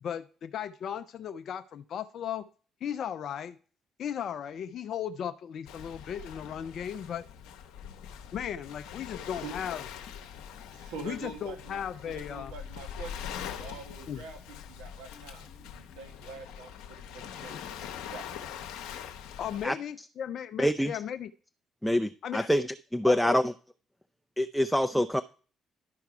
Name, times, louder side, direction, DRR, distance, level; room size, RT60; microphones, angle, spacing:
voice 1, 0.0-2.5 2.8-3.6 4.0-7.3 8.3-9.9 11.0-12.5 14.1-14.2 19.4-21.3 22.2-22.5 23.0-23.4, left 9 dB, 60° left, 0.4 m, -36 dB
Waves surf, 5.7-19.7, left 9 dB, 80° left, 0.9 m, -43 dB
voice 2, 10.7-18.2, right 5 dB, 85° right, 1.4 m, -45 dB
voice 3, 20.6-20.9 21.8-22.7 22.9-23.5 24.4-25.2, equal, ahead, 0.5 m, -25 dB
11.5 x 4.7 x 4.7 m
hypercardioid pair, 50°, 0 cm